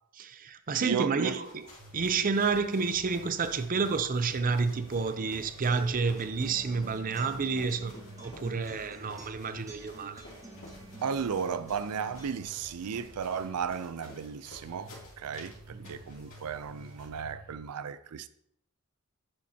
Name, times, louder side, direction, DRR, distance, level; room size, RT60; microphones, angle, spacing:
voice 1, 0.1-1.7 1.9-10.2 15.7-16.1, right 4 dB, 40° right, 0.5 m, -30 dB
voice 2, 0.8-1.4 11.0-18.3, right 6 dB, 90° right, 0.5 m, -34 dB
sound 1, 1.2-17.2, left 1 dB, 60° left, 2.8 m, -53 dB
sound 2, 1.8-17.6, right 1 dB, 65° right, 3.2 m, -52 dB
Acoustic guitar, 4.4-12.4, right 2 dB, 15° right, 1.4 m, -51 dB
10.0 x 7.3 x 2.8 m
head